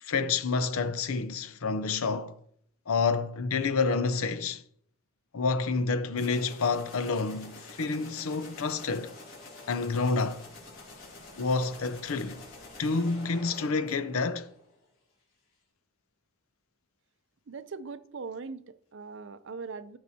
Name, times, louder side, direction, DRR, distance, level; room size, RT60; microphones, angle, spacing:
voice 1, 0.0-2.4 2.9-4.6 5.3-9.1 9.7-10.4 11.4-12.4 12.8-14.5, left 4 dB, 80° left, 0.6 m, -28 dB
sound 1, 6.1-14.8, left 3 dB, 65° left, 3.6 m, -48 dB
voice 2, 17.5-20.0, right 4 dB, 60° right, 0.5 m, -40 dB
12.5 x 6.3 x 2.8 m
head